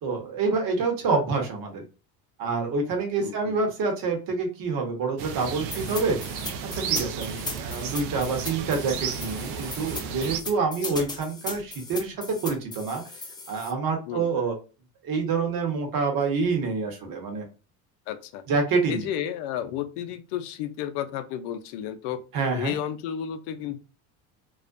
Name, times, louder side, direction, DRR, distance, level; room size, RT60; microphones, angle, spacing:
voice 1, 0.0-1.8 2.4-6.2 6.6-13.0 13.5-14.6 15.0-17.5 18.5-19.1 22.3-22.7, right 4 dB, 55° right, 3 dB, 1.0 m, -27 dB
voice 2, 3.2-3.6 10.6-11.1 14.1-14.3 18.1-18.4 18.9-22.2 22.5-23.8, left 10 dB, 65° left, 10 dB, 0.5 m, -32 dB
sound 1, 5.2-10.4, right 7 dB, 70° right, 0.5 m, -33 dB
sound 2, 5.7-13.7, left 3 dB, 10° left, 0.5 m, -37 dB
2.4 x 2.1 x 2.4 m, 0.32 s
supercardioid pair, 90°, 42 cm